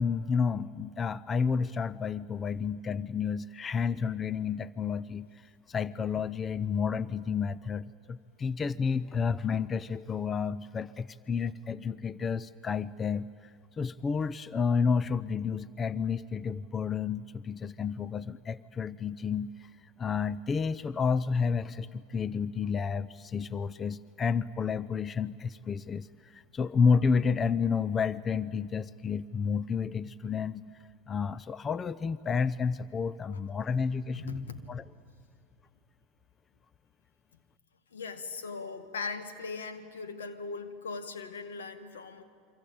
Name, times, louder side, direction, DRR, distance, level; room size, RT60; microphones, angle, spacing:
voice 1, 0.0-19.7 20.0-30.6 31.1-34.8, left 6 dB, 30° left, 18 dB, 0.6 m, -31 dB
voice 2, 34.2-34.7 37.9-42.2, left 4 dB, 85° left, 9 dB, 1.8 m, -39 dB
28.0 x 24.5 x 8.7 m, 2.2 s
hypercardioid pair, 90°, 0 cm